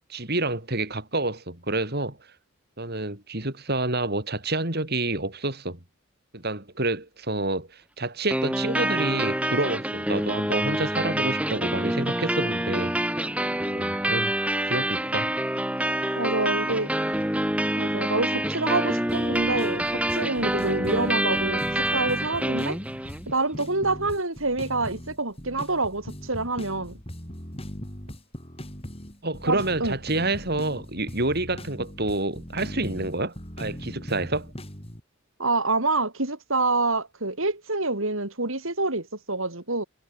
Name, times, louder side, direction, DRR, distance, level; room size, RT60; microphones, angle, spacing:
voice 1, 0.1-2.2 2.8-5.8 6.3-13.1 13.7-14.3 14.6-15.3 29.2-34.5, right 2 dB, 45° right, 4.2 m, -28 dB
sound 1, 8.3-23.3, right 1 dB, 5° right, 4.1 m, -26 dB
voice 2, 16.2-16.9 17.8-22.8 23.3-26.9 29.5-30.0 35.4-39.8, right 3 dB, 60° right, 4.1 m, -27 dB
sound 2, 19.1-35.0, equal, 25° left, 5.5 m, -39 dB
head